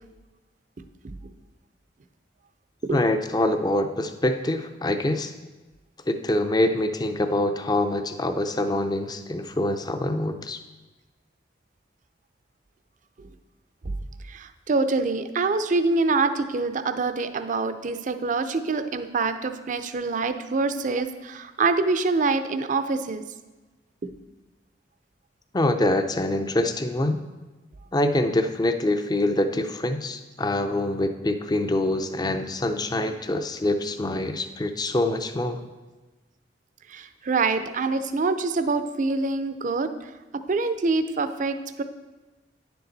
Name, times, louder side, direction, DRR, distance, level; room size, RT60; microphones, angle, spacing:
voice 1, 2.9-5.3 6.1-10.6 25.5-27.2 27.9-35.6, left 1 dB, 25° left, 8 dB, 0.5 m, -25 dB
voice 2, 14.3-23.2 36.9-39.9 40.5-41.8, right 3 dB, 45° right, 10 dB, 0.5 m, -25 dB
9.7 x 6.9 x 4.0 m, 1.2 s
head